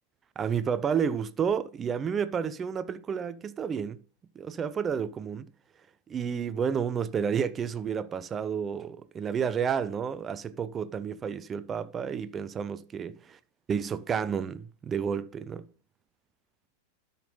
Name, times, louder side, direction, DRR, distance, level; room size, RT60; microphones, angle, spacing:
voice 1, 0.4-4.0 4.4-5.5 6.1-13.2 13.7-15.7, right 7 dB, 20° right, 0.5 m, -30 dB
12.0 x 5.5 x 3.7 m
figure-of-eight pair, 90°, 0 cm